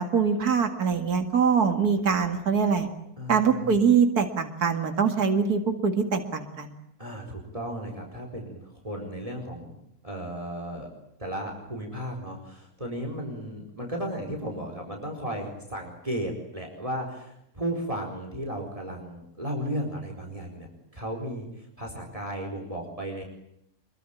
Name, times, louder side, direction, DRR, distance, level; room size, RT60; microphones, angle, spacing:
voice 1, 0.0-2.9 3.3-6.7, right 6 dB, 85° right, 6 dB, 2.6 m, -23 dB
voice 2, 3.2-3.7 7.0-9.8 10.0-10.9 11.2-20.7 20.9-23.2, equal, 20° right, 3 dB, 4.6 m, -34 dB
26.5 x 23.0 x 9.0 m, 0.79 s
omnidirectional pair, 1.6 m